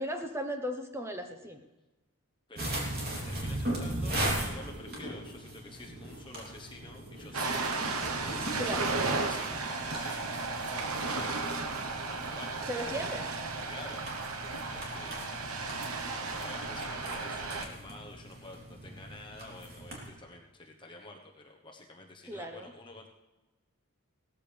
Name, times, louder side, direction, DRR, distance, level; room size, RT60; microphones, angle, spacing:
voice 1, 0.0-1.6 8.6-9.0 12.7-13.2 22.3-22.7, equal, 10° right, 5 dB, 1.0 m, -36 dB
voice 2, 2.5-3.0 3.2-7.7 8.3-8.8 9.0-11.3 12.1-13.3 13.7-14.0 14.7-15.4 16.1-23.1, left 2 dB, 20° left, 1 dB, 1.1 m, -49 dB
sound 1, 2.6-20.1, right 1 dB, 45° right, 3.0 m, -39 dB
Ocean, 7.3-17.7, right 3 dB, 80° right, 1.1 m, -34 dB
17.0 x 13.5 x 3.4 m, 1.1 s
head